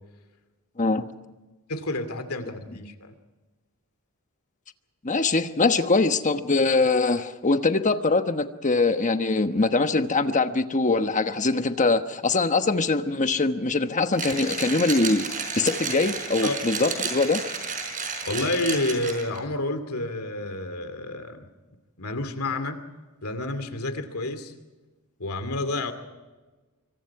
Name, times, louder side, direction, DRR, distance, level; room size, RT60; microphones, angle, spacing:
voice 1, 1.7-3.1 16.4-16.5 18.3-21.5 22.0-22.8 23.2-24.5 25.2-25.9, left 2 dB, 75° left, 9 dB, 2.6 m, -29 dB
voice 2, 5.0-15.3 15.6-17.4, left 3 dB, 35° left, 8 dB, 1.1 m, -23 dB
Mechanisms, 14.1-19.4, right 5 dB, 35° right, 5.0 m, -32 dB
26.5 x 24.5 x 4.8 m, 1.2 s
head